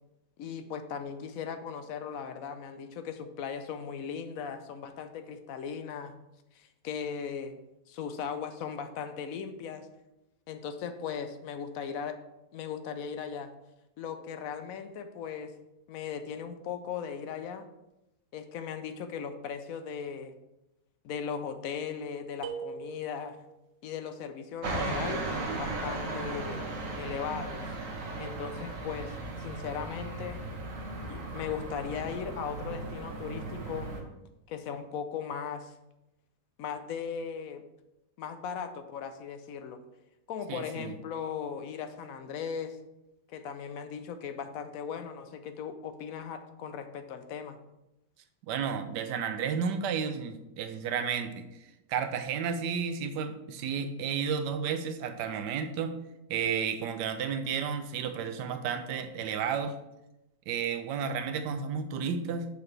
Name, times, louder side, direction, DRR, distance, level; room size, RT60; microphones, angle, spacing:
voice 1, 0.4-6.1 6.5-7.6 7.9-9.9 10.5-12.2 12.5-13.5 14.0-15.5 15.9-17.7 18.3-20.3 21.0-23.4 23.8-26.6 27.0-27.7 28.2-30.4 31.0-33.9 34.5-35.7 36.6-37.6 38.2-39.8 40.3-42.8 43.3-47.6, left 7 dB, 70° left, 8 dB, 0.9 m, -38 dB
sound 1, 22.4-23.6, right 6 dB, 70° right, 0.6 m, -41 dB
sound 2, 24.6-34.0, right 2 dB, 55° right, 1.4 m, -36 dB
voice 2, 40.5-40.9 48.5-51.4 51.9-55.9 56.3-59.7 60.5-62.5, right 6 dB, 90° right, 8 dB, 1.2 m, -32 dB
6.6 x 5.8 x 3.2 m, 0.93 s
omnidirectional pair, 1.8 m